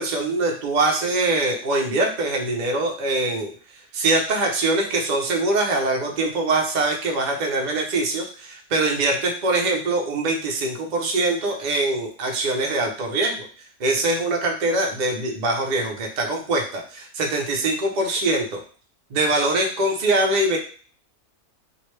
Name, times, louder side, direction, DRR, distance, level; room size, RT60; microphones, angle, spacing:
voice 1, 0.0-3.5 3.9-13.5 13.8-18.6 19.1-20.6, right 2 dB, 55° right, 1 dB, 0.5 m, -23 dB
3.1 x 2.5 x 3.1 m, 0.42 s
omnidirectional pair, 1.5 m